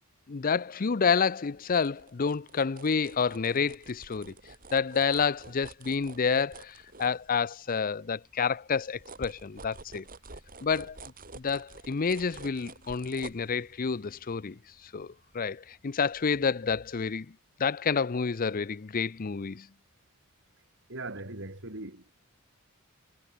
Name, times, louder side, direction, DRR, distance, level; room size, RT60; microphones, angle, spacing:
voice 1, 0.3-4.3 4.7-10.0 10.6-11.0 11.4-14.6 14.9-17.3 17.6-19.7, left 5 dB, 40° left, 0.5 m, -29 dB
sound 1, 1.5-7.8 8.2-15.7 16.1-16.2, right 3 dB, 45° right, 7.3 m, -50 dB
voice 2, 20.9-22.3, right 2 dB, 60° right, 4.0 m, -40 dB
head